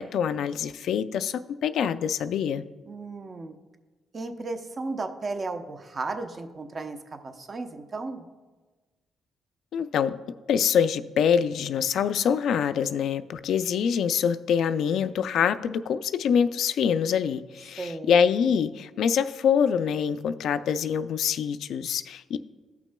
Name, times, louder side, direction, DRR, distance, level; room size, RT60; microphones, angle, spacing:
voice 1, 0.0-2.6 9.7-10.2 10.5-22.4, left 7 dB, 70° left, 12 dB, 0.3 m, -25 dB
voice 2, 2.9-3.5 4.1-8.3 17.8-18.1, right 3 dB, 40° right, 7 dB, 0.7 m, -34 dB
15.0 x 5.9 x 2.2 m, 1.3 s
cardioid pair, 90°, 0 cm